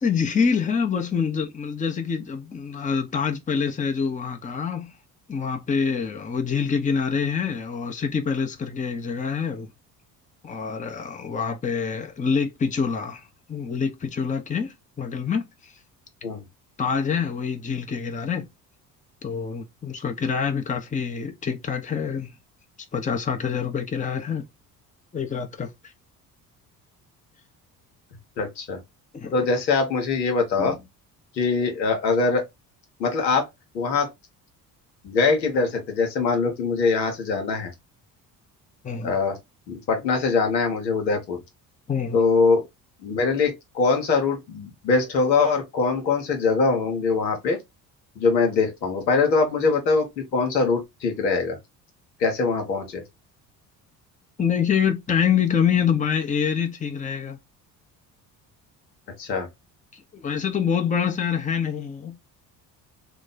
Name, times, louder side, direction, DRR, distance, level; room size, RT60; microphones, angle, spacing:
voice 1, 0.0-4.9 5.3-9.7 10.4-13.2 13.5-15.7 16.8-18.5 19.2-22.3 22.9-24.5 25.1-25.7 29.1-29.5 30.6-30.8 38.8-39.2 41.9-42.2 54.4-57.4 59.9-62.2, left 6 dB, 15° left, 0.7 m, -26 dB
voice 2, 28.4-28.8 29.3-30.7 31.4-32.4 33.0-33.5 33.7-34.1 35.0-37.7 39.0-39.4 39.7-41.4 42.1-42.7 43.0-47.6 48.2-50.0 50.3-51.6 52.2-53.0 59.2-59.5, left 4 dB, 85° left, 1.0 m, -22 dB
3.0 x 2.2 x 3.8 m
figure-of-eight pair, 55°, 50 cm